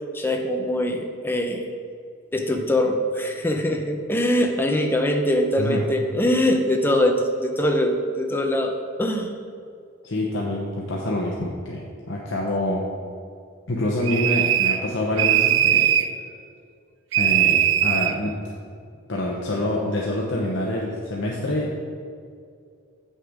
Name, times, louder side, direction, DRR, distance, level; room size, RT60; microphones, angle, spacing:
voice 1, 0.1-1.7 2.3-8.7 9.0-9.3, left 1 dB, 10° left, 3 dB, 0.6 m, -22 dB
voice 2, 10.0-12.8 13.7-15.9 17.2-18.3 19.1-21.7, left 1 dB, 60° left, -3 dB, 0.9 m, -26 dB
sound 1, 14.0-14.9 15.2-16.1 17.1-18.2, right 10 dB, 65° right, 0.4 m, -20 dB
7.8 x 6.5 x 5.0 m, 2.3 s
head